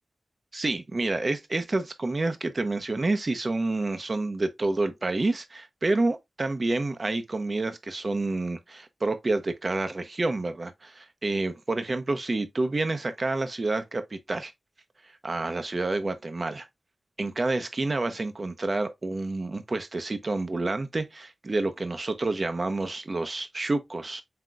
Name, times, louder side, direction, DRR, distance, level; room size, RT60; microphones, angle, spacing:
voice 1, 0.5-14.5 15.2-16.7 17.2-24.2, right 2 dB, 40° right, 0.8 m, -28 dB
7.6 x 2.9 x 2.3 m
wide cardioid pair, 105°, 0 cm